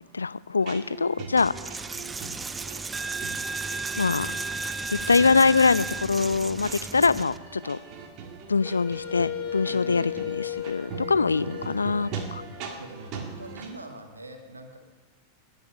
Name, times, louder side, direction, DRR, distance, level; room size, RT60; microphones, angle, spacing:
voice 1, 0.1-1.7 4.0-4.3 4.9-7.8 8.5-12.4, left 4 dB, 75° left, 18 dB, 0.3 m, -24 dB
sound 1, 0.6-13.7, right 5 dB, 40° right, 1.8 m, -41 dB
Coin (dropping), 1.4-7.4, right 3 dB, 15° right, 0.4 m, -34 dB
Wind instrument woodwind instrument, 8.6-13.5, left 10 dB, 45° left, 2.7 m, -36 dB
voice 2, 9.6-10.3 12.8-14.8, right 2 dB, 80° right, 4 dB, 1.8 m, -43 dB
19.5 x 7.8 x 5.3 m, 1.4 s
figure-of-eight pair, 90°, 0 cm